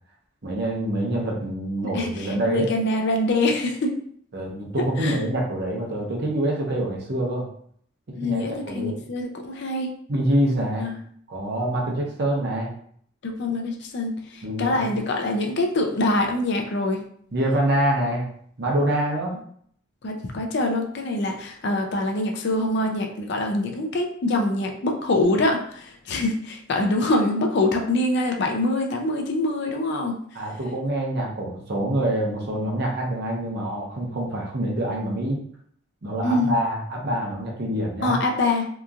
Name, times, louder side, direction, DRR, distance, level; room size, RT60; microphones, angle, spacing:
voice 1, 0.4-2.7 4.3-7.5 8.2-9.0 10.1-10.9 11.3-12.7 14.4-15.0 17.3-18.2 18.6-19.4 30.3-35.4 36.0-38.2, right 1 dB, 55° right, -2 dB, 0.7 m, -25 dB
voice 2, 1.9-3.9 5.0-5.2 8.1-9.9 10.8-11.0 13.2-17.0 20.0-30.2 36.2-36.5 38.0-38.7, left 2 dB, 55° left, 3 dB, 0.5 m, -24 dB
2.9 x 2.4 x 2.4 m, 0.62 s
head